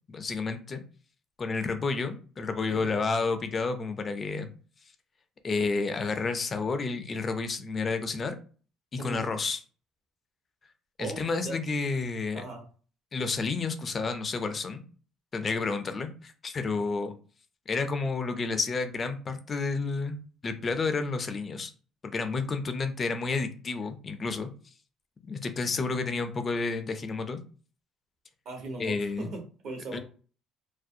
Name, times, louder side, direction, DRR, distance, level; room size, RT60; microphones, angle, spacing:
voice 1, 0.1-0.8 1.4-4.5 5.4-8.4 8.9-9.6 11.0-12.4 13.1-14.8 15.3-17.1 17.7-20.2 20.4-21.7 22.0-24.5 25.2-27.4 28.8-29.3 29.9-30.0, left 4 dB, 30° left, 8 dB, 0.3 m, -30 dB
voice 2, 2.7-3.0 9.0-9.2 11.0-11.6 12.3-12.6 28.4-30.0, right 3 dB, 60° right, 1 dB, 0.9 m, -39 dB
2.4 x 2.1 x 2.6 m, 0.40 s
cardioid pair, 125°, 0 cm